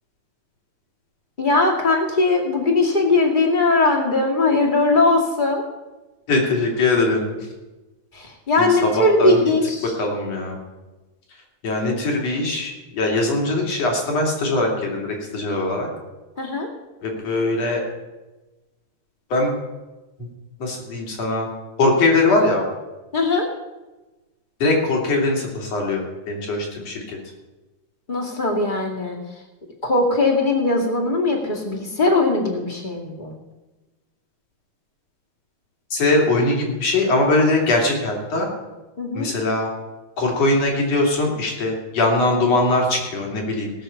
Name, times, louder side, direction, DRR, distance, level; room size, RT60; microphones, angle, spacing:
voice 1, 1.4-5.6 8.1-9.9 16.4-16.7 23.1-23.5 28.1-29.4 29.8-33.3 39.0-39.3, left 2 dB, 15° left, 0 dB, 2.1 m, -20 dB
voice 2, 6.3-7.5 8.6-8.7 9.0-9.4 10.0-10.6 11.6-15.9 17.0-17.8 19.3-19.5 20.2-20.3 20.6-21.5 21.8-22.6 24.6-27.2 35.9-38.5 39.1-39.7 40.2-43.7, left 2 dB, 60° left, 0 dB, 3.9 m, -21 dB
18.5 x 6.3 x 7.0 m, 1.1 s
omnidirectional pair, 3.4 m